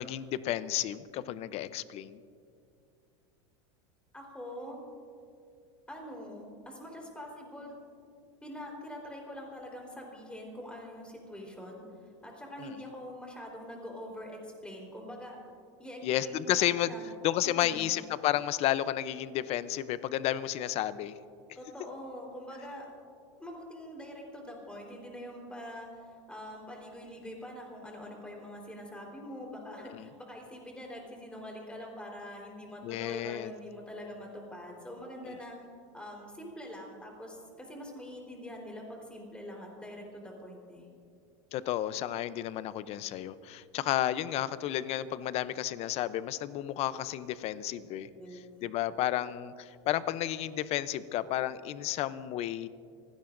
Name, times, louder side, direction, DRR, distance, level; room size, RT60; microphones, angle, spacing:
voice 1, 0.0-2.2 12.6-12.8 16.0-16.9 17.2-21.2 29.9-30.1 32.8-33.5 35.3-35.4 41.5-48.1 48.6-52.7, left 12 dB, 40° left, 15 dB, 0.6 m, -32 dB
voice 2, 4.1-4.8 5.9-7.7 8.4-11.9 12.2-15.4 15.8-17.1 17.4-17.9 21.6-22.9 23.4-35.6 35.9-40.9 48.2-48.4, equal, 5° left, 0 dB, 4.0 m, -44 dB
25.5 x 16.5 x 2.6 m, 2.4 s
supercardioid pair, 120°, 15 cm